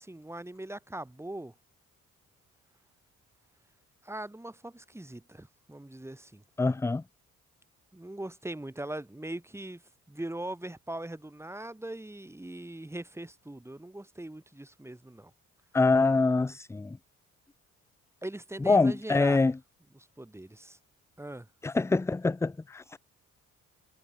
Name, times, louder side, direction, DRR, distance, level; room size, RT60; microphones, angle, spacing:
voice 1, 0.0-1.5 4.0-6.4 7.9-9.8 10.1-15.3 18.2-19.4 19.9-20.8 21.2-21.5, right 1 dB, 10° right, 3.6 m, -40 dB
voice 2, 6.6-7.0 15.7-17.0 18.7-19.5 21.6-23.0, left 3 dB, 10° left, 0.4 m, -25 dB
cardioid pair, 90°, 30 cm